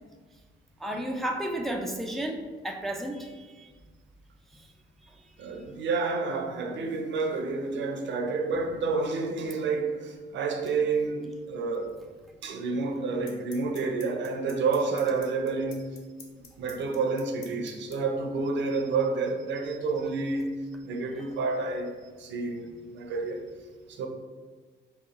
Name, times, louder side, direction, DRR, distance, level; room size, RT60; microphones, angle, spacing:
voice 1, 0.8-3.7, right 1 dB, ahead, 0.4 m, -32 dB
voice 2, 5.4-11.9 12.4-16.0 16.6-20.6 20.8-23.4 23.9-24.1, right 4 dB, 70° right, 0.6 m, -29 dB
sound 1, 12.2-12.3 13.3-17.9, left 7 dB, 90° left, 0.6 m, -47 dB
4.9 x 2.3 x 3.0 m
cardioid pair, 90°, 20 cm